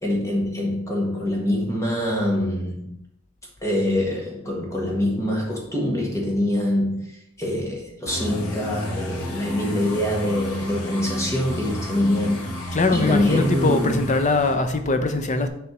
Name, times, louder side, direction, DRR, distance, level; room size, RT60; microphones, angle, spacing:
voice 1, 0.0-2.9 3.6-14.2, left 1 dB, 15° left, -2 dB, 1.5 m, -24 dB
sound 1, 8.1-14.5, left 1 dB, 80° left, 1.5 m, -33 dB
voice 2, 12.7-15.5, left 3 dB, 35° left, 7 dB, 0.6 m, -21 dB
6.8 x 3.4 x 6.0 m, 0.79 s
head